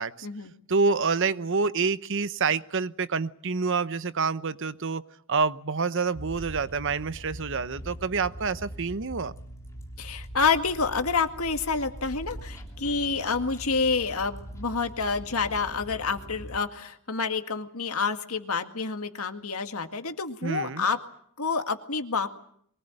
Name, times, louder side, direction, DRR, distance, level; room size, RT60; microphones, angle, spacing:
voice 1, 0.7-5.0 5.3-9.3 20.4-20.9, right 4 dB, 60° right, 14 dB, 0.9 m, -27 dB
sound 1, 6.1-16.6, right 1 dB, 15° left, 3.3 m, -42 dB
voice 2, 10.0-21.0 21.4-22.3, left 4 dB, 85° left, 7 dB, 1.9 m, -28 dB
23.5 x 19.5 x 9.0 m, 0.66 s
head